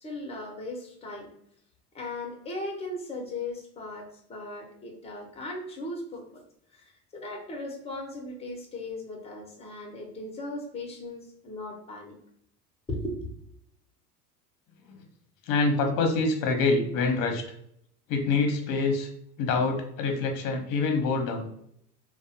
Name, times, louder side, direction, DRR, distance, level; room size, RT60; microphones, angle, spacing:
voice 1, 0.0-1.3 1.9-6.4 6.7-12.1 12.9-13.3, left 2 dB, 15° left, 1 dB, 0.7 m, -37 dB
voice 2, 15.5-17.4 18.1-19.1 19.4-21.5, left 3 dB, 50° left, 4 dB, 0.7 m, -26 dB
2.6 x 2.1 x 2.7 m, 0.72 s
hypercardioid pair, 95°, 43 cm